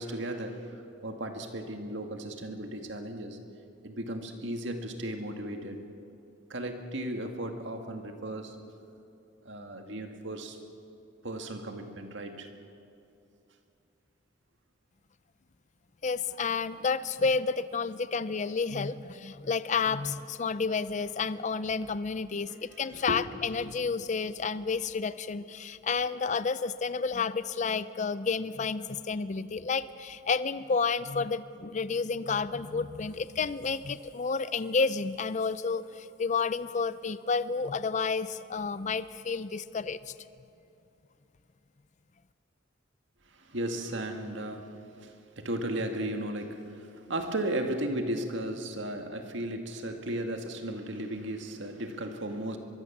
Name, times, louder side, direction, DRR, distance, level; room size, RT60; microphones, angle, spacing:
voice 1, 0.0-3.4 3.8-5.8 6.5-8.6 9.5-10.6 11.2-12.5 22.9-23.3 43.3-52.6, right 1 dB, 65° right, 5 dB, 2.0 m, -35 dB
voice 2, 16.0-40.1, left 5 dB, 35° left, 14 dB, 0.5 m, -30 dB
23.5 x 22.5 x 7.3 m, 2.7 s
head